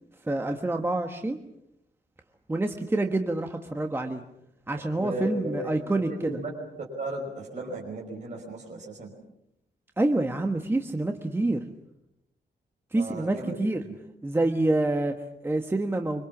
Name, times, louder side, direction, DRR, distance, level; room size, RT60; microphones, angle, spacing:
voice 1, 0.2-1.4 2.5-4.2 4.7-6.3 10.0-11.6 12.9-13.8 14.2-16.2, right 2 dB, 15° right, 5 dB, 1.3 m, -27 dB
voice 2, 4.8-5.7 6.2-6.5 6.8-9.1 12.9-14.0, right 1 dB, 40° right, -2 dB, 5.4 m, -36 dB
25.5 x 25.5 x 7.3 m, 0.81 s
wide cardioid pair, 165°, 18 cm